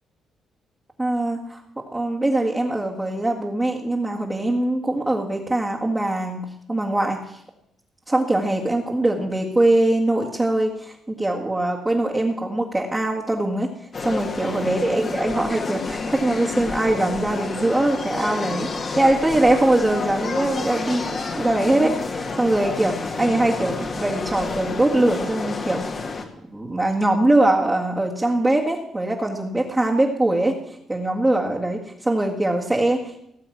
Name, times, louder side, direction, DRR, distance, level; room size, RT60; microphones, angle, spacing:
voice 1, 1.0-1.6 1.9-7.4 8.1-13.7 14.0-18.7 19.0-26.0 26.5-33.0, right 1 dB, 15° right, -4 dB, 1.8 m, -22 dB
sound 1, 13.9-26.2, left 4 dB, 40° left, 1.8 m, -29 dB
17.5 x 7.0 x 6.1 m, 0.78 s
cardioid pair, 90°, 0 cm